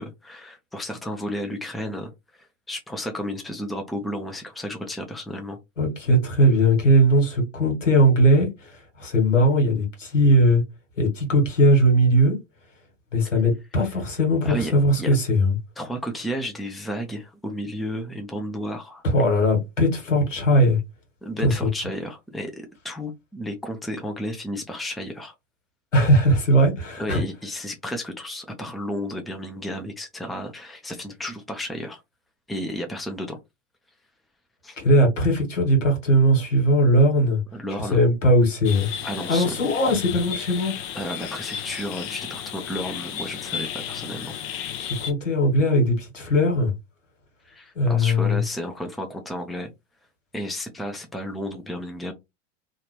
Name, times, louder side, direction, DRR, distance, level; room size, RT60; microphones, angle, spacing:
voice 1, 0.0-5.6 14.4-14.7 15.0-15.2 15.8-19.0 21.2-25.3 27.0-32.0 32.5-33.4 34.6-34.8 37.5-38.0 39.0-39.6 40.9-44.4 47.4-49.7 50.3-52.1, equal, ahead, 0.5 m, -32 dB
voice 2, 5.8-10.6 11.0-12.4 13.1-15.6 19.0-20.8 21.4-21.7 25.9-27.2 34.8-37.4 37.8-38.9 39.3-40.7 44.8-46.7 47.7-48.4, equal, 85° left, 1.5 m, -19 dB
sound 1, 38.6-45.1, left 9 dB, 45° left, 0.8 m, -34 dB
2.9 x 2.4 x 3.1 m
figure-of-eight pair, 90°, 37 cm